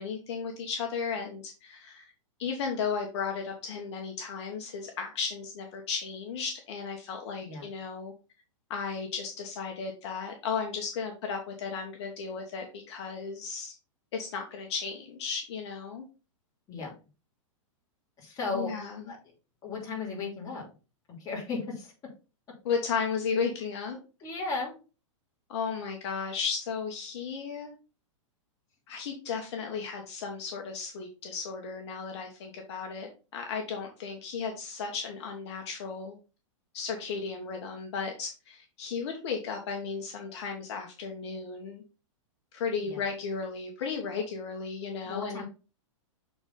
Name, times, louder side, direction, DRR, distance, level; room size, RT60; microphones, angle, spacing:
voice 1, 0.0-2.1 2.4-8.1 8.7-13.7 14.1-16.0 18.5-19.0 22.6-24.0 25.5-27.7 28.9-36.1 36.7-41.8 42.5-45.4, left 5 dB, 55° left, 2 dB, 1.4 m, -34 dB
voice 2, 18.2-18.7 19.0-19.2 19.6-20.7 21.1-21.9 24.2-24.8 42.8-43.0 45.0-45.5, left 4 dB, 20° left, -3 dB, 2.8 m, -35 dB
6.9 x 4.1 x 4.0 m, 0.33 s
hypercardioid pair, 150°, 17 cm